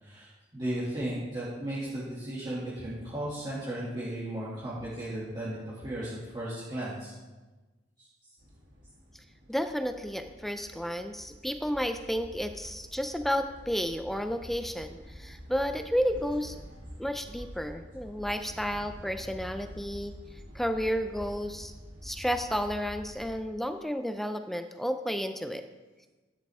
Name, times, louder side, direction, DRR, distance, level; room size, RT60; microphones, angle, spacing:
voice 1, 0.0-7.1 8.0-8.1, right 1 dB, 25° right, -10 dB, 2.4 m, -35 dB
sound 1, 8.4-23.4, equal, 85° right, 2.5 m, -47 dB
voice 2, 9.5-16.6 17.0-20.1 20.5-21.7 22.0-25.6, equal, ahead, 8 dB, 0.4 m, -32 dB
12.5 x 9.2 x 3.6 m, 1.2 s
head